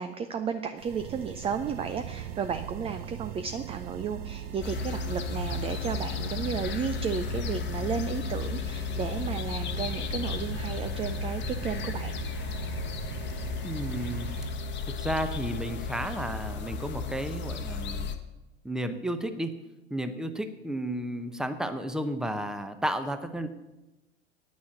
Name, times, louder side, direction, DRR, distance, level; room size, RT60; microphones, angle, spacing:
voice 1, 0.0-12.2, right 6 dB, 15° right, 9 dB, 0.5 m, -33 dB
sound 1, 0.8-14.5, right 10 dB, 40° right, 0.8 m, -40 dB
sound 2, 4.6-18.1, left 5 dB, 30° left, 1.1 m, -34 dB
voice 2, 13.6-14.3 14.9-18.1 18.6-19.6 19.9-23.5, right 1 dB, ahead, 9 dB, 0.8 m, -32 dB
9.5 x 6.2 x 8.5 m, 1.0 s
figure-of-eight pair, 85°, 34 cm